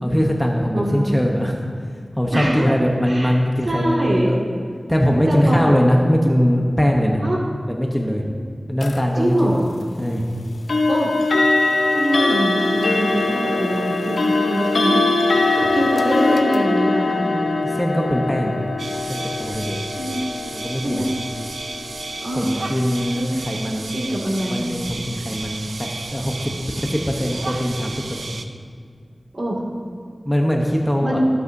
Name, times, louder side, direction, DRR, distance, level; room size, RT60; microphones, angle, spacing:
voice 1, 0.0-1.6 2.2-4.4 4.9-7.2 7.7-8.2 8.7-9.5 10.0-10.3 17.6-18.5 19.1-19.8 20.5-21.0 22.4-24.0 24.5-26.5 26.8-28.4 30.2-31.2, equal, 10° left, 0 dB, 0.9 m, -21 dB
voice 2, 0.7-1.2 2.3-2.7 3.1-3.4 3.7-4.3 5.3-5.8 7.2-7.4 9.1-9.6 10.9-11.1 11.9-15.0 15.5-17.7 20.0-20.2 20.8-21.1 22.2-22.5 23.2-23.3 23.9-24.7 29.3-29.7 31.0-31.3, right 1 dB, 50° right, -3 dB, 2.1 m, -23 dB
sound 1, 8.8-9.0 10.7-23.5, left 3 dB, 90° left, 0.6 m, -22 dB
sound 2, 18.8-28.4, right 3 dB, 90° right, 0.5 m, -33 dB
14.5 x 8.2 x 2.7 m, 2.1 s
wide cardioid pair, 80°, 0 cm